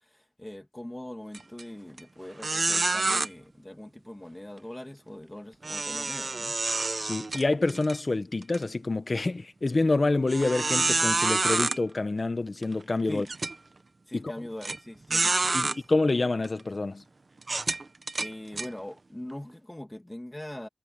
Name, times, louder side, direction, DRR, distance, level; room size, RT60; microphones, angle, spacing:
voice 1, 0.0-6.6 13.1-13.3 14.1-15.8 18.2-20.7, left 1 dB, 15° left, 2.7 m, -42 dB
sound 1, 1.3-1.6 2.0-2.1 2.4-3.3 5.6-8.0 8.4-8.6 9.2-9.3 10.3-11.8 12.6-12.7 13.3-13.5 14.6-14.8 15.1-15.8 16.4-16.6 17.4-18.7, right 3 dB, 50° right, 1.1 m, -27 dB
voice 2, 7.0-13.2 14.1-14.3 15.5-17.0, left 2 dB, 45° left, 1.3 m, -27 dB
wide cardioid pair, 85°, 0 cm